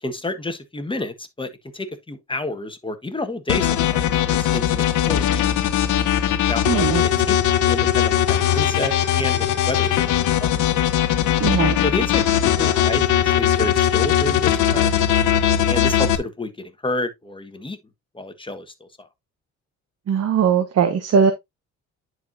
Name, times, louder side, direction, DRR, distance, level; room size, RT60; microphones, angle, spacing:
voice 1, 0.0-5.5 6.5-7.4 7.7-10.5 11.8-15.0 15.6-17.8 18.1-19.1, left 2 dB, 15° left, 1.5 m, -30 dB
sound 1, 3.5-16.2, left 10 dB, 80° left, 1.0 m, -19 dB
voice 2, 6.7-7.0 11.4-11.8 20.1-21.3, right 7 dB, 55° right, 1.1 m, -19 dB
10.5 x 4.6 x 2.6 m
cardioid pair, 90°, 30 cm